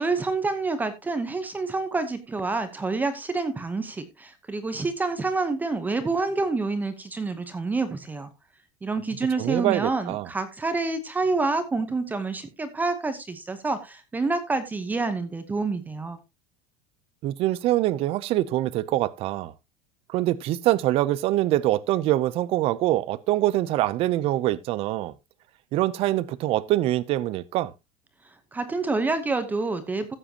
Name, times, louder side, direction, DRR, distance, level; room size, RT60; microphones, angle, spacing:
voice 1, 0.0-8.3 8.8-16.2 28.2-30.1, right 3 dB, 10° right, 0.9 m, -28 dB
voice 2, 9.4-10.3 17.2-19.5 20.1-25.1 25.7-27.7, right 15 dB, 30° right, 0.6 m, -24 dB
15.0 x 7.7 x 2.8 m
cardioid pair, 175°, 18 cm